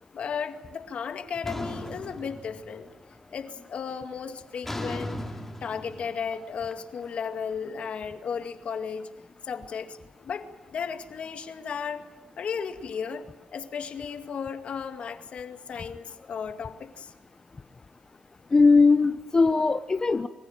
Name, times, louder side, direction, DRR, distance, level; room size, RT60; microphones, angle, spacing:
voice 1, 0.1-2.9 3.3-5.2 5.6-9.1 9.4-12.1 12.4-13.3 13.5-17.1, left 6 dB, 60° left, 6 dB, 2.2 m, -35 dB
sound 1, 1.4-3.0 3.3-3.8 4.6-7.7, left 1 dB, 10° left, 3.0 m, -37 dB
voice 2, 18.5-20.3, left 4 dB, 30° left, 9 dB, 0.8 m, -20 dB
26.0 x 15.0 x 9.2 m, 1.3 s
cardioid pair, 90°, 2 cm